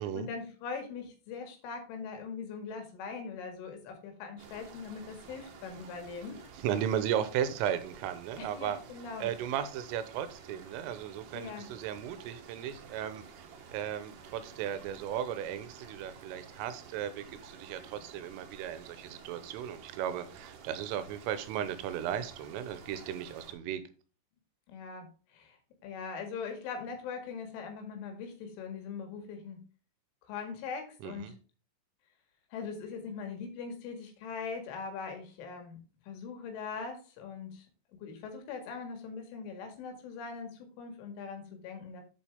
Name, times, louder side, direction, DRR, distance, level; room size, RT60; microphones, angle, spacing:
voice 1, 0.0-6.4 8.4-9.3 11.3-11.8 24.7-25.6 25.8-29.6 30.3-31.3 32.5-35.8 36.1-37.7 38.0-42.0, left 5 dB, 75° left, 4.3 m, -41 dB
sound 1, 4.4-23.5, right 6 dB, 65° right, 3.3 m, -52 dB
voice 2, 6.6-8.8 9.2-13.5 13.7-23.8 31.0-31.3, right 9 dB, 85° right, 3.4 m, -35 dB
8.4 x 7.3 x 3.5 m
omnidirectional pair, 5.7 m